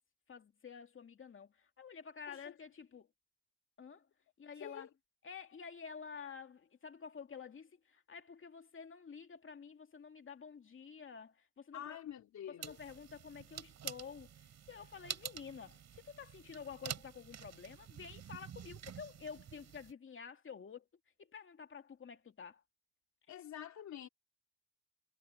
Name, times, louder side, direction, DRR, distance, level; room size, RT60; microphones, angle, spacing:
voice 1, 0.3-3.1 3.8-4.1 4.4-4.9 5.2-12.0 12.5-20.9 21.2-22.6, left 6 dB, 40° left, 2.5 m, -50 dB
voice 2, 4.6-4.9 11.7-12.8 23.3-24.1, left 10 dB, 65° left, 2.9 m, -47 dB
sound 1, 12.6-19.9, right 9 dB, 65° right, 6.2 m, -48 dB
cardioid pair, 90°, 30 cm